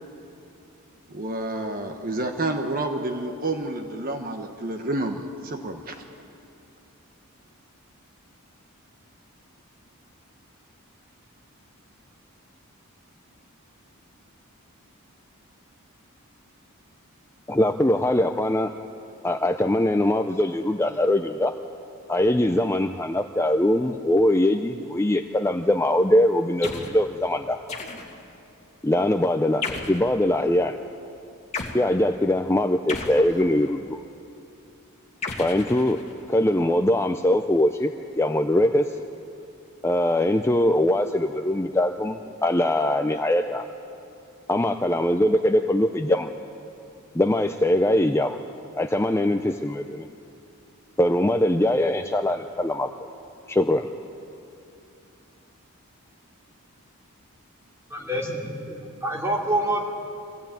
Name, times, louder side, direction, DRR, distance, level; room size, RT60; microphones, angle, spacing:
voice 1, 1.1-6.0, right 2 dB, 40° right, 5 dB, 1.2 m, -29 dB
voice 2, 17.5-18.7 19.2-21.5 22.1-27.6 28.8-30.8 31.7-34.0 35.4-36.0 36.3-39.0 39.8-43.6 44.5-46.3 47.1-48.4 48.8-50.1 51.0-52.9 53.5-53.9, left 1 dB, 10° left, 6 dB, 0.5 m, -22 dB
sound 1, 26.6-27.0 27.7-28.3 29.6-30.1 31.5-31.8 32.9-33.8 35.2-36.3, left 4 dB, 30° left, 2.0 m, -34 dB
voice 3, 57.9-59.8, right 1 dB, 10° right, -2 dB, 2.9 m, -27 dB
23.5 x 16.0 x 9.1 m, 2.7 s
head